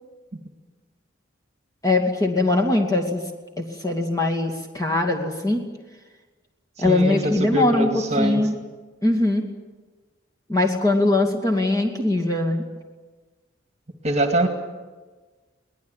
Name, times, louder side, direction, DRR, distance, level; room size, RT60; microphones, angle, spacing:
voice 1, 1.8-3.2 3.6-5.6 6.8-8.6 9.0-9.4 10.5-12.6, left 2 dB, 15° left, 2 dB, 2.5 m, -21 dB
voice 2, 6.8-8.4 14.0-14.5, right 1 dB, 35° right, 5 dB, 2.2 m, -23 dB
23.0 x 19.0 x 9.2 m, 1.3 s
head